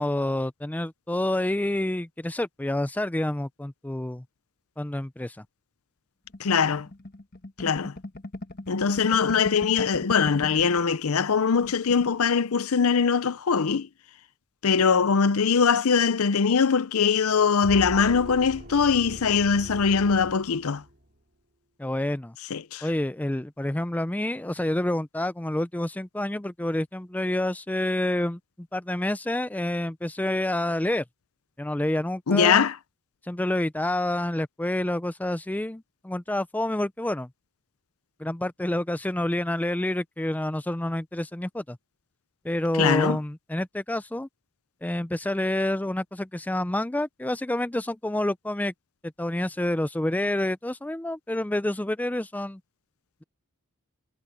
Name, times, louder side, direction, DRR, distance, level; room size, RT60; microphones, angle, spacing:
voice 1, 0.0-4.2 4.8-5.4 21.8-22.4 22.8-28.4 28.7-31.0 31.6-32.7 33.3-37.3 38.2-41.8 42.4-44.3 44.8-48.7 49.2-52.6, left 1 dB, 5° left, 0.4 m, -28 dB
sound 1, 6.3-10.9 11.2-11.3 11.6-12.2, left 1 dB, 45° left, 1.5 m, -38 dB
voice 2, 6.4-6.9 7.6-7.9 8.7-13.9 14.6-20.8 22.5-22.9 32.3-32.8 42.8-43.2, left 6 dB, 75° left, 0.6 m, -22 dB
sound 2, 17.6-21.1, right 1 dB, 45° right, 3.3 m, -40 dB
head